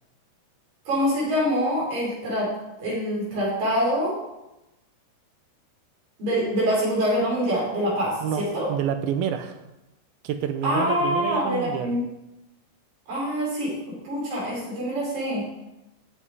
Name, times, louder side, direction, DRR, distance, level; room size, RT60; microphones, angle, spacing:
voice 1, 0.9-2.5 2.8-4.2 6.2-8.7 10.6-12.0 13.1-13.8 14.0-15.5, equal, 50° right, -6 dB, 7.1 m, -25 dB
voice 2, 8.7-9.6 10.2-12.0, right 8 dB, 75° right, 8 dB, 2.3 m, -28 dB
15.5 x 7.7 x 4.8 m, 0.95 s
omnidirectional pair, 5.0 m